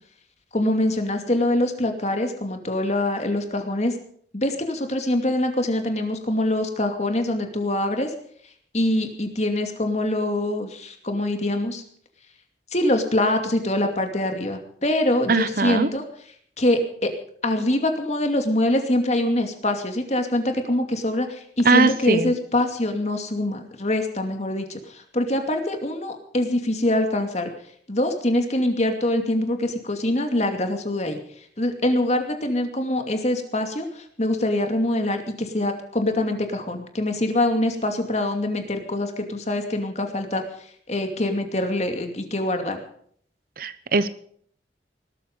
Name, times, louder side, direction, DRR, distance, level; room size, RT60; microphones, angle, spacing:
voice 1, 0.5-4.0 4.3-8.1 8.7-11.8 12.7-16.0 16.6-17.1 17.4-27.5 27.9-31.2 31.6-40.4 40.9-42.8, left 1 dB, 40° left, 5 dB, 2.6 m, -24 dB
voice 2, 15.3-15.9 21.6-22.3 43.6-44.1, right 4 dB, 55° right, 14 dB, 0.9 m, -20 dB
19.5 x 13.0 x 5.5 m, 0.62 s
head